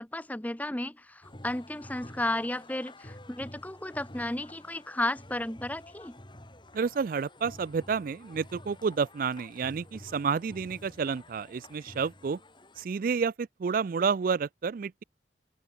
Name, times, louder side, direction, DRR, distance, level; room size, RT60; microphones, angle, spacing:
voice 1, 0.0-6.2, left 1 dB, 10° left, 0.8 m, -33 dB
sound 1, 1.2-12.8, left 1 dB, 25° left, 3.9 m, -50 dB
voice 2, 6.7-12.4 12.8-15.0, right 5 dB, 50° right, 0.4 m, -30 dB
open air
head